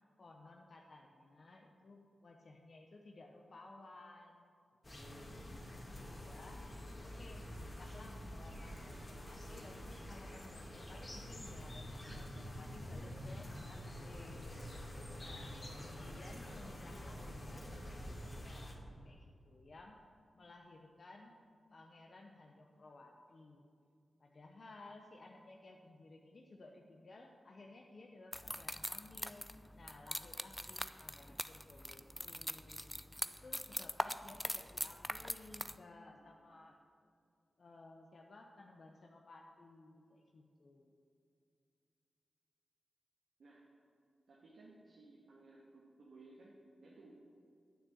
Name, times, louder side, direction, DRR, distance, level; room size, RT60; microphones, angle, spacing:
voice 1, 0.2-4.5 4.9-5.4 5.9-6.7 7.0-14.5 15.2-20.1 20.3-21.4 21.7-23.6 24.2-29.5 29.7-32.9 33.2-36.8 37.6-40.9, left 2 dB, 55° left, 1 dB, 0.9 m, -57 dB
sound 1, 4.8-18.7, left 1 dB, 30° left, 2.1 m, -47 dB
sound 2, 28.3-35.7, equal, 5° left, 0.4 m, -42 dB
voice 2, 44.3-47.1, right 2 dB, 80° right, -4 dB, 1.6 m, -59 dB
9.6 x 6.3 x 8.0 m, 2.4 s
cardioid pair, 55°, 0 cm